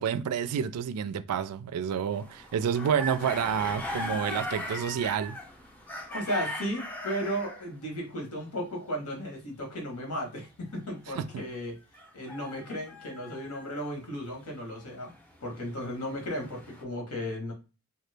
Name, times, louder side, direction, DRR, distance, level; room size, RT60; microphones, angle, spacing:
voice 1, 0.0-5.4 11.2-11.4, right 7 dB, 85° right, 0.3 m, -29 dB
sound 1, 2.1-7.7 11.9-13.9 14.7-16.8, left 1 dB, 5° left, 0.5 m, -39 dB
voice 2, 6.1-11.8 12.1-15.1 15.4-17.5, equal, 80° left, 1.2 m, -35 dB
3.0 x 2.2 x 3.2 m
head